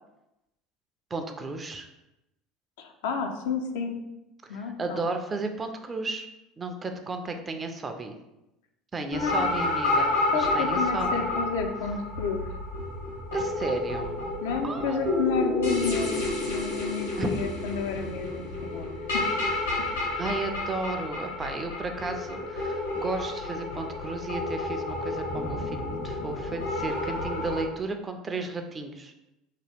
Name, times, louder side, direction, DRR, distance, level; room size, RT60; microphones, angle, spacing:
voice 1, 1.1-1.9 4.5-6.3 6.6-8.2 8.9-11.2 13.3-14.3 14.6-15.6 17.2-17.3 20.2-29.1, right 3 dB, 25° right, 6 dB, 0.4 m, -34 dB
voice 2, 2.8-4.0 4.5-5.0 9.1-9.5 10.3-12.4 14.4-19.3 19.9-20.0, left 5 dB, 70° left, 4 dB, 0.3 m, -31 dB
sound 1, 9.1-27.6, left 2 dB, 85° left, 1.3 m, -30 dB
2.8 x 2.3 x 3.3 m, 0.92 s
figure-of-eight pair, 65°, 0 cm